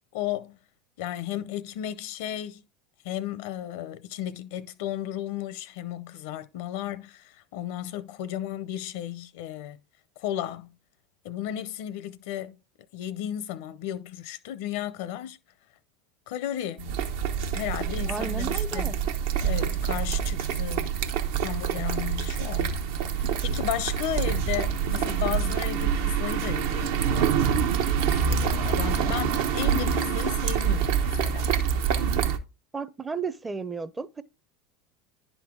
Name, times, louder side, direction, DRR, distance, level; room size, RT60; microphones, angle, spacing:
voice 1, 0.1-0.6 1.0-2.6 3.0-9.8 10.2-10.7 11.2-12.6 12.9-15.4 16.3-17.0 17.5-19.0 19.4-21.0 21.4-22.8 23.1-27.4 27.8-28.0 28.3-31.6, left 12 dB, 70° left, 0.7 m, -34 dB
sound 1, 16.8-32.4, right 7 dB, 70° right, 0.8 m, -26 dB
voice 2, 18.1-19.0 32.7-34.2, right 5 dB, 15° right, 0.5 m, -33 dB
10.5 x 4.0 x 3.6 m
hypercardioid pair, 85°, 0 cm